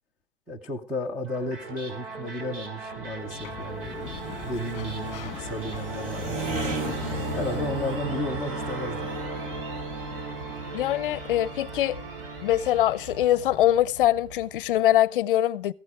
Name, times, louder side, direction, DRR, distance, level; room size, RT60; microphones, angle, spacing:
voice 1, 0.5-6.8 7.3-9.1, left 1 dB, 5° right, 0.6 m, -33 dB
sound 1, 1.2-13.5, right 4 dB, 60° right, 4.8 m, -39 dB
Sliding door, 3.1-8.4, left 13 dB, 25° left, 1.4 m, -41 dB
sound 2, 3.3-14.9, right 3 dB, 35° right, 2.0 m, -36 dB
voice 2, 10.7-12.0 12.4-15.7, left 13 dB, 60° left, 0.7 m, -23 dB
14.5 x 11.0 x 4.8 m
supercardioid pair, 170°, 31 cm